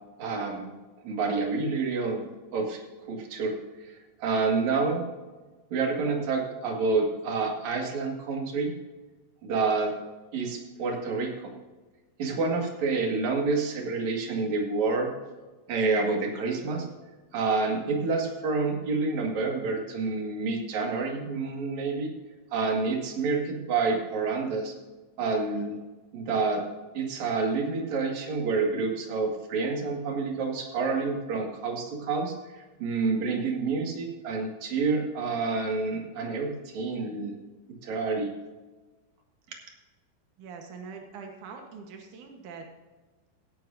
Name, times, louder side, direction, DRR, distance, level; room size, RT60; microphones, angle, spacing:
voice 1, 0.2-0.7 1.0-2.2 2.5-2.8 3.1-3.6 3.8-5.0 5.7-8.7 9.4-9.9 10.3-11.5 12.2-15.1 15.7-16.9 17.3-22.1 22.5-24.7 25.2-25.7 26.1-26.6 26.9-37.3 37.8-38.3, right 4 dB, 50° right, 1 dB, 2.4 m, -28 dB
voice 2, 40.4-42.7, right 5 dB, 85° right, 3 dB, 1.7 m, -43 dB
16.5 x 11.0 x 2.6 m, 1.2 s
omnidirectional pair, 5.4 m